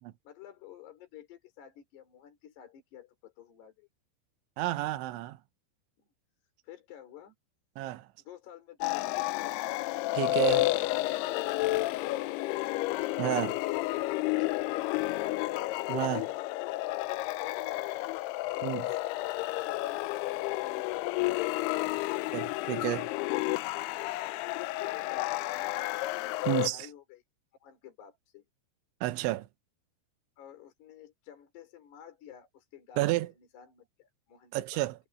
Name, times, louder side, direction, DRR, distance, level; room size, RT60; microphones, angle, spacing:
voice 1, 0.2-3.9 6.0-6.1 6.6-7.3 8.2-9.7 11.6-12.8 17.4-18.1 18.5-22.1 24.5-25.7 26.3-27.2 27.6-28.5 30.4-33.1 33.4-34.9, left 10 dB, 65° left, 6.4 m, -52 dB
voice 2, 4.6-5.4 7.8-8.1 10.2-10.7 13.2-13.6 15.9-16.3 18.6-18.9 22.3-23.1 26.5-26.9 29.0-29.5 33.0-33.3 34.5-35.0, right 17 dB, 85° right, 3.2 m, -31 dB
sound 1, 8.8-26.7, left 18 dB, 85° left, 2.3 m, -31 dB
omnidirectional pair, 5.3 m